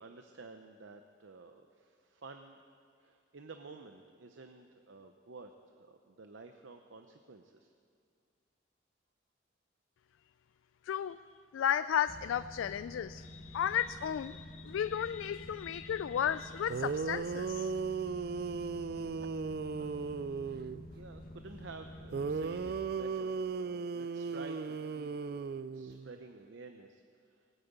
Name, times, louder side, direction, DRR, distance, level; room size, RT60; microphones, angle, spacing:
voice 1, 0.0-2.6 3.0-5.5 5.8-7.7 19.8-19.9 20.9-25.1 25.4-27.0 27.3-27.4, right 3 dB, 75° right, 6 dB, 0.7 m, -51 dB
voice 2, 10.8-11.2 11.5-17.7, left 9 dB, 85° left, 14 dB, 0.3 m, -34 dB
sound 1, 12.1-22.7, equal, 45° left, 1.6 m, -49 dB
sound 2, 16.4-16.5 16.7-20.9 22.1-26.1, right 5 dB, 50° right, 0.3 m, -36 dB
19.5 x 9.0 x 8.2 m, 2.3 s
head